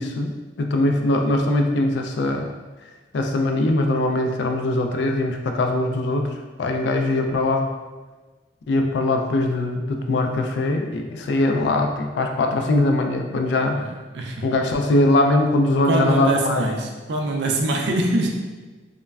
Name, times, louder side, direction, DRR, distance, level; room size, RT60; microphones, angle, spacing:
voice 1, 0.0-2.4 3.1-6.3 6.6-7.7 8.7-13.8 14.4-16.7, left 2 dB, 65° left, 3 dB, 0.3 m, -21 dB
voice 2, 13.7-14.5 15.9-18.3, right 2 dB, 65° right, 1 dB, 0.4 m, -24 dB
3.1 x 2.1 x 2.3 m, 1.3 s
head